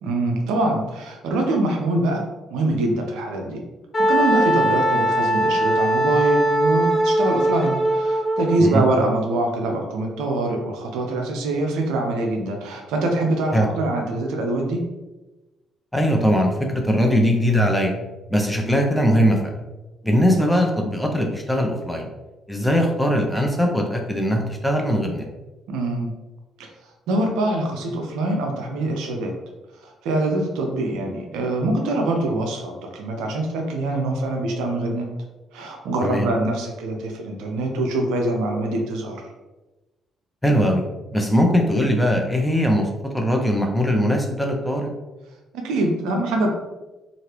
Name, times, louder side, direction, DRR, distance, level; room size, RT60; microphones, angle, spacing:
voice 1, 0.0-2.2 2.5-3.6 4.1-14.8 25.7-26.1 26.6-26.7 27.1-29.3 29.8-35.1 35.5-39.2 45.5-46.5, right 2 dB, 70° right, 2 dB, 0.4 m, -24 dB
Wind instrument woodwind instrument, 3.9-8.6, right 1 dB, 35° left, 0.9 m, -20 dB
voice 2, 15.9-17.9 18.3-19.5 20.0-22.1 22.5-25.2 36.0-36.3 40.4-40.8 41.1-44.9, equal, 5° left, 2 dB, 0.6 m, -20 dB
2.8 x 2.5 x 3.1 m, 1.1 s
figure-of-eight pair, 45°, 0 cm